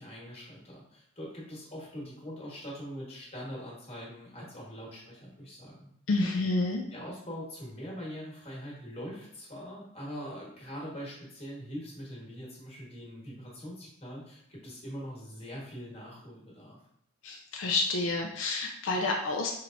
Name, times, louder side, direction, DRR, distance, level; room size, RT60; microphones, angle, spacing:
voice 1, 0.0-5.9 6.4-6.5 6.9-16.8, equal, 30° left, -4 dB, 1.2 m, -42 dB
voice 2, 6.1-6.8 17.2-19.5, left 3 dB, 70° left, 1 dB, 0.4 m, -29 dB
4.6 x 3.2 x 2.5 m, 0.73 s
head